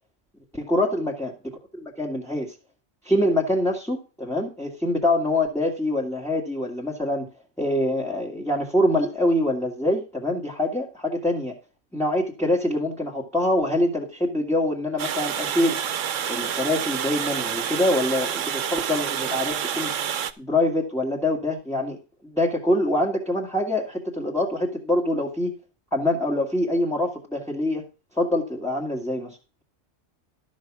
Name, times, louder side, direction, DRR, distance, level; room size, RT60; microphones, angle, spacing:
voice 1, 0.5-1.3 1.7-2.5 3.0-7.3 7.6-11.5 11.9-15.8 16.3-19.9 20.4-22.0 22.2-25.5 25.9-27.8 28.2-29.6, left 1 dB, ahead, -3 dB, 1.9 m, -25 dB
Water, 15.0-20.3, right 9 dB, 80° right, 1.1 m, -28 dB
12.5 x 6.2 x 6.0 m, 0.33 s
omnidirectional pair, 1.3 m